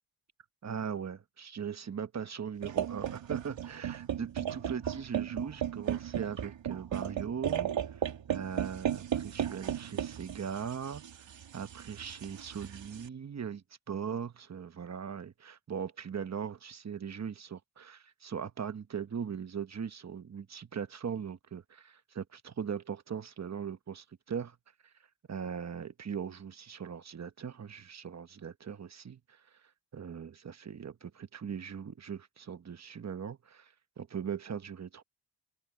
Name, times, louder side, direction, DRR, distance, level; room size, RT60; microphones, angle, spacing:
voice 1, 0.6-24.6 24.8-24.9 25.3-35.0, right 7 dB, 35° right, 1.0 m, -40 dB
sound 1, 2.6-13.1, right 9 dB, 75° right, 2.1 m, -35 dB
wide cardioid pair, 110°, 45 cm